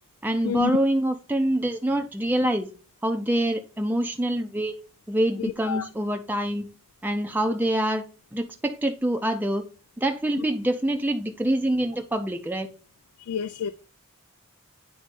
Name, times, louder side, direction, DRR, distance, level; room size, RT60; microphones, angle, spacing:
voice 1, 0.2-2.7 3.0-4.7 5.1-6.7 7.0-8.0 8.3-9.7 10.0-12.7, right 1 dB, 10° right, 0.5 m, -25 dB
voice 2, 5.4-5.9 13.2-13.7, left 6 dB, 75° left, 0.4 m, -30 dB
8.8 x 3.2 x 5.2 m
head